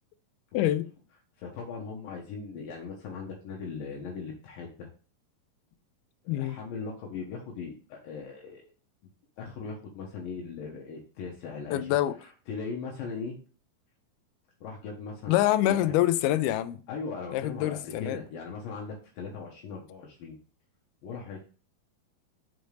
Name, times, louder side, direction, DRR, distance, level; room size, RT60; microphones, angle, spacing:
voice 1, 0.5-0.9 6.3-6.6 11.7-12.2 15.3-16.8 17.3-18.2, left 13 dB, 90° left, 2.5 m, -25 dB
voice 2, 1.4-4.9 6.2-8.7 9.4-11.9 12.2-13.4 14.6-15.4 15.7-16.0 16.9-20.4 21.0-21.4, left 5 dB, 75° left, 2.6 m, -39 dB
6.1 x 5.3 x 3.2 m
omnidirectional pair, 4.4 m